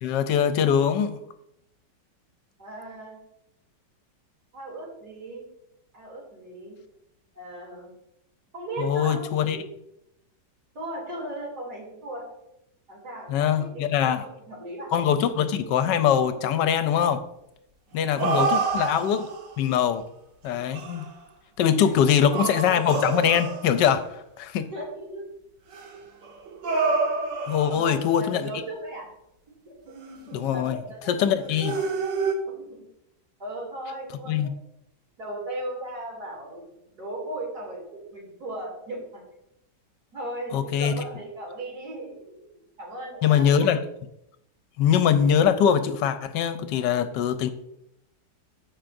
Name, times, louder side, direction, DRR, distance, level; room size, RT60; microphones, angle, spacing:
voice 1, 0.0-1.2 8.8-9.6 13.3-14.2 14.9-17.2 17.9-19.3 19.6-20.0 20.4-21.1 21.6-24.7 27.5-28.5 30.3-30.8 31.1-31.7 34.3-34.5 40.5-40.9 43.2-43.8 44.8-47.5, left 8 dB, 75° left, 10 dB, 1.2 m, -22 dB
voice 2, 2.6-3.2 4.5-5.5 5.9-6.8 7.3-8.0 8.5-9.6 10.7-12.3 12.9-14.9 18.1-18.6 21.6-22.0 24.6-25.2 27.7-29.1 30.5-31.8 32.5-32.9 33.4-34.4 35.2-39.2 40.1-42.1 42.8-43.7, right 1 dB, 60° right, -3 dB, 3.4 m, -37 dB
sound 1, 17.9-19.6 20.5-21.1 22.1-24.0 25.7-28.2 29.9-30.7 31.6-32.3, right 4 dB, 75° right, 1.8 m, -28 dB
14.5 x 5.0 x 2.6 m, 0.82 s
omnidirectional pair, 2.0 m